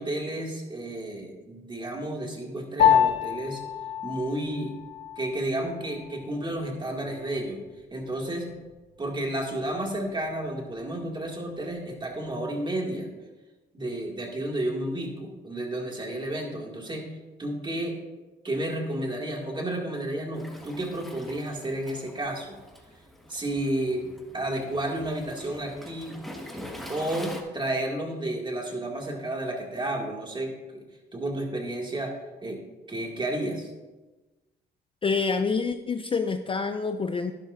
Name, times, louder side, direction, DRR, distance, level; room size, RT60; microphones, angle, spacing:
voice 1, 0.0-3.6 4.0-4.7 5.2-7.6 7.9-8.5 9.0-13.1 13.7-17.1 17.4-18.0 18.4-22.6 23.3-24.1 24.3-26.2 26.9-30.8 31.1-32.1 32.4-32.6 32.9-33.7, right 1 dB, 25° right, 0 dB, 2.1 m, -31 dB
Piano, 2.8-12.4, left 9 dB, 70° left, 1.6 m, -30 dB
Waves surf, 20.3-27.4, left 1 dB, ahead, 1.5 m, -44 dB
voice 2, 35.0-37.3, left 4 dB, 25° left, 8 dB, 0.4 m, -27 dB
11.5 x 10.5 x 2.5 m, 1.2 s
cardioid pair, 90°, 20 cm